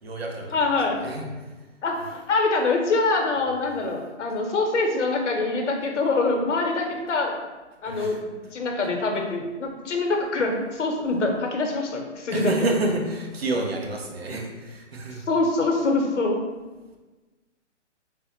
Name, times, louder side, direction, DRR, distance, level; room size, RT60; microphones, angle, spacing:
voice 1, 0.0-1.5 7.9-8.2 12.3-15.2, right 2 dB, 55° right, 0 dB, 0.8 m, -29 dB
voice 2, 0.5-1.0 1.8-7.3 7.8-8.2 8.5-12.5 15.1-16.4, left 3 dB, 75° left, 2 dB, 0.8 m, -24 dB
3.6 x 2.1 x 4.1 m, 1.2 s
hypercardioid pair, 170°, 36 cm